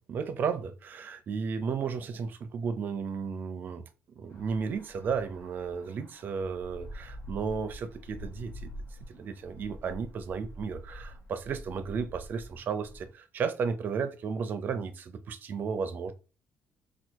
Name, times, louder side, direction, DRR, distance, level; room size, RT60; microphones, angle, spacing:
voice 1, 0.1-3.8 4.2-8.7 9.1-16.1, right 6 dB, 40° right, 0.5 m, -34 dB
sound 1, 4.3-13.1, equal, 60° left, 1.4 m, -46 dB
4.6 x 2.3 x 4.5 m
cardioid pair, 175°, 5 cm